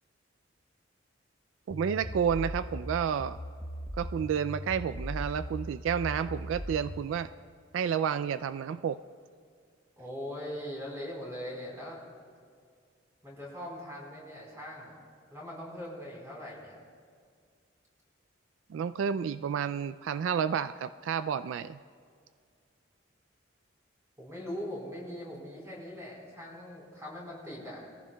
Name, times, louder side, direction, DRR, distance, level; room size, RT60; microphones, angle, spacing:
sound 1, 1.7-7.1, equal, 20° left, 0.7 m, -39 dB
voice 1, 1.7-3.4 4.0-7.3 7.7-9.0 18.7-21.8, right 7 dB, 80° right, 14 dB, 0.3 m, -30 dB
voice 2, 10.0-12.0 13.2-15.0 15.3-16.8 24.2-27.8, equal, 15° right, -4 dB, 4.0 m, -41 dB
22.0 x 14.5 x 2.3 m, 2.2 s
head